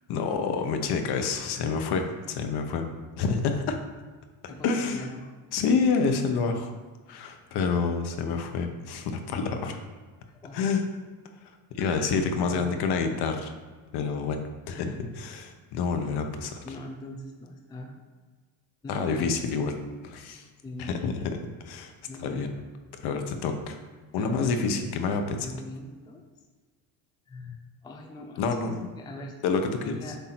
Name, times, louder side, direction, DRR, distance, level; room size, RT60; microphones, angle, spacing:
voice 1, 0.1-2.9 3.2-3.8 4.6-5.1 5.5-6.7 7.1-9.8 10.5-10.8 11.4-13.5 13.9-16.6 18.9-19.7 20.0-20.5 20.8-21.4 21.6-21.9 22.2-22.5 23.0-23.8 24.1-25.5 28.4-28.9 29.4-30.0, left 5 dB, 60° left, 6 dB, 0.9 m, -28 dB
voice 2, 4.5-5.3 10.4-10.7 11.8-12.1 12.5-13.0 14.7-14.9 16.6-18.0 18.8-19.5 20.6-20.9 22.1-22.5 24.1-25.0 25.4-26.2 27.3-28.7 29.0-29.3 29.8-30.2, left 1 dB, 10° left, 2 dB, 0.4 m, -41 dB
8.1 x 2.7 x 5.9 m, 1.4 s
cardioid pair, 155°, 44 cm